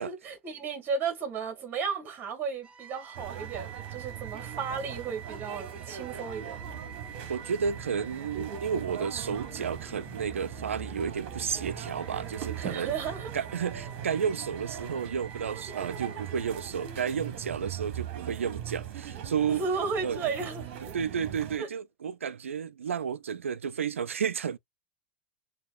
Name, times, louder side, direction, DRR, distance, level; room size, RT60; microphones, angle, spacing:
voice 1, 0.0-6.7 12.6-13.3 19.5-20.9 21.6-21.7, right 5 dB, 35° right, 2.3 m, -34 dB
sound 1, 2.6-17.8, right 5 dB, 15° right, 0.8 m, -48 dB
sound 2, 3.1-21.6, right 9 dB, 55° right, 1.2 m, -40 dB
voice 2, 7.3-12.9 13.3-19.6 20.0-20.2 20.9-24.6, right 7 dB, 85° right, 0.4 m, -32 dB
6.6 x 2.7 x 2.5 m
hypercardioid pair, 100°, 7 cm